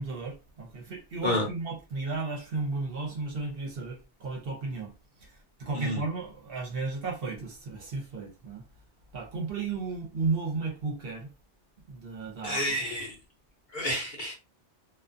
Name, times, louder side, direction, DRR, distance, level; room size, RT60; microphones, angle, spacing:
voice 1, 0.0-4.9 5.2-8.6 9.1-11.3 11.9-12.9, right 3 dB, 55° right, 0.9 m, -34 dB
voice 2, 12.4-13.2 13.7-14.3, left 1 dB, 45° left, 0.9 m, -30 dB
2.4 x 2.3 x 2.5 m
omnidirectional pair, 1.2 m